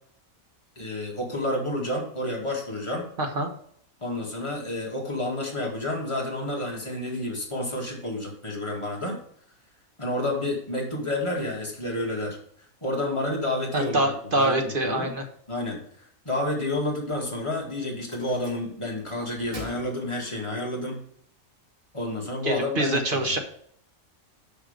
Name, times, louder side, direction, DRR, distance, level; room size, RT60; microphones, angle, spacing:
voice 1, 0.8-3.1 4.0-9.2 10.0-12.4 12.8-15.1 15.5-21.0 21.9-23.3, left 1 dB, 20° left, -2 dB, 2.1 m, -30 dB
voice 2, 3.2-3.5 13.7-15.2 22.4-23.4, right 1 dB, 40° right, 4 dB, 1.4 m, -25 dB
sound 1, 17.9-19.0 19.3-20.7, equal, 60° right, 3.8 m, -44 dB
6.5 x 6.2 x 5.1 m, 0.64 s
omnidirectional pair, 1.5 m